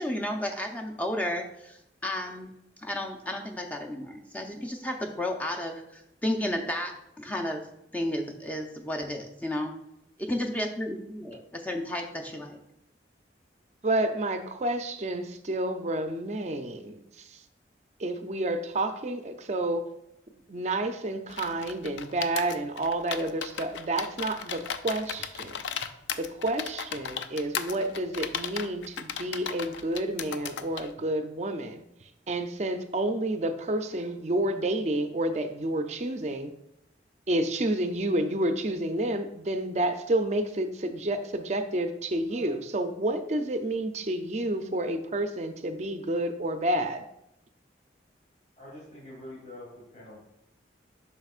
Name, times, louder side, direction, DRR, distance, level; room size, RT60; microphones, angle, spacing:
voice 1, 0.0-2.5 2.8-7.7 7.9-9.7 10.2-12.6, left 1 dB, 10° left, 2 dB, 0.6 m, -32 dB
voice 2, 13.8-17.0 18.0-19.9 20.5-25.6 26.2-31.8 32.3-36.5 37.3-47.0, right 1 dB, 40° right, 7 dB, 0.4 m, -29 dB
sound 1, 21.3-30.9, left 7 dB, 85° left, 0.4 m, -36 dB
voice 3, 48.6-50.2, left 1 dB, 40° left, -7 dB, 1.9 m, -45 dB
7.9 x 5.6 x 2.4 m, 0.83 s
head